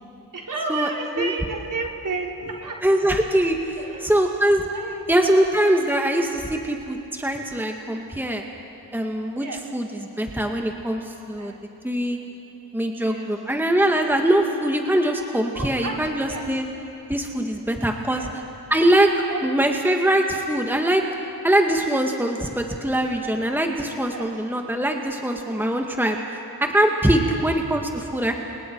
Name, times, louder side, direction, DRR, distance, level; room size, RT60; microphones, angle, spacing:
voice 1, 0.3-2.8 3.8-4.1 4.7-5.4 9.4-9.6 11.3-11.6 13.0-13.3 15.5-16.5 18.1-18.3 19.3-19.6 24.1-24.3 27.2-27.4, right 3 dB, 55° right, -1 dB, 4.1 m, -32 dB
voice 2, 2.8-3.8 4.0-4.7 5.1-8.4 8.9-9.5 9.7-11.5 11.8-12.2 12.7-16.6 17.1-18.4 18.7-19.1 19.4-21.1 21.4-26.2 26.6-28.4, right 1 dB, 5° right, 2 dB, 2.0 m, -22 dB
29.5 x 26.0 x 4.8 m, 2.9 s
supercardioid pair, 40°, 38 cm